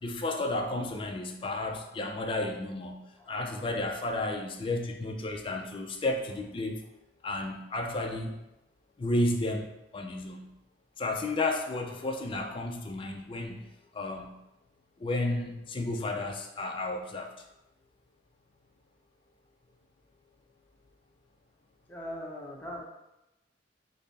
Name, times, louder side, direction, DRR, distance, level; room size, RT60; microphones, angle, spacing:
voice 1, 0.0-6.8 7.2-8.4 9.0-10.5 11.0-13.7 13.9-14.4 15.0-17.3, left 2 dB, 30° left, 2 dB, 0.4 m, -32 dB
voice 2, 21.9-22.8, equal, 10° left, -4 dB, 0.8 m, -41 dB
5.2 x 2.0 x 4.0 m, 0.94 s
head